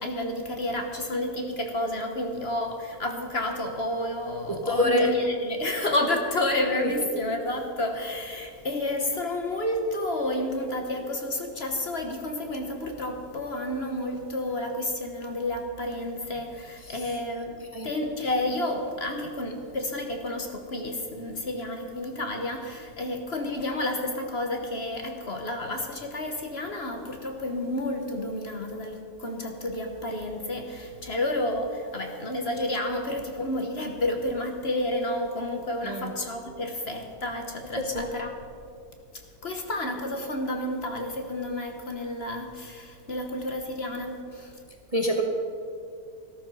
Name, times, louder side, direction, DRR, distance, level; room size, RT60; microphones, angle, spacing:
voice 1, 0.0-17.6 17.8-38.4 39.4-44.6, left 1 dB, 45° left, 4 dB, 1.3 m, -30 dB
voice 2, 4.5-5.1 17.7-17.9 35.8-36.1 37.9-38.1 44.9-45.2, left 1 dB, 25° right, 2 dB, 1.0 m, -25 dB
14.5 x 13.0 x 5.4 m, 2.4 s
omnidirectional pair, 1.7 m